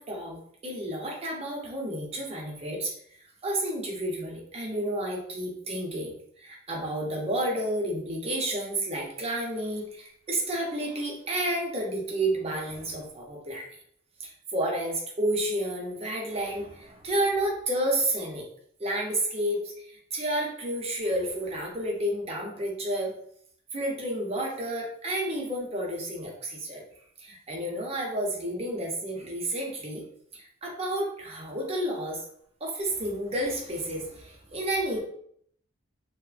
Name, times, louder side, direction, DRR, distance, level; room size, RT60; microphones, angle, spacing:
voice 1, 0.0-2.9 3.4-13.7 14.2-18.5 18.8-23.1 23.7-26.8 27.2-30.1 30.3-32.2 32.6-35.0, right 1 dB, 35° right, 0 dB, 0.6 m, -31 dB
3.0 x 2.0 x 2.4 m, 0.66 s
head